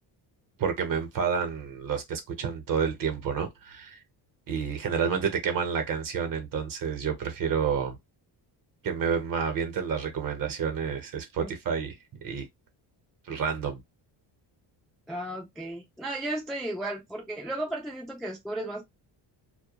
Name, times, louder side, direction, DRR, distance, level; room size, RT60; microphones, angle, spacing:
voice 1, 0.6-4.0 4.5-8.0 8.8-12.0 12.2-12.5 13.3-13.8, right 6 dB, 50° right, 0.8 m, -29 dB
voice 2, 15.1-18.8, right 1 dB, ahead, 0.3 m, -34 dB
2.2 x 2.2 x 2.8 m
cardioid pair, 145°, 44 cm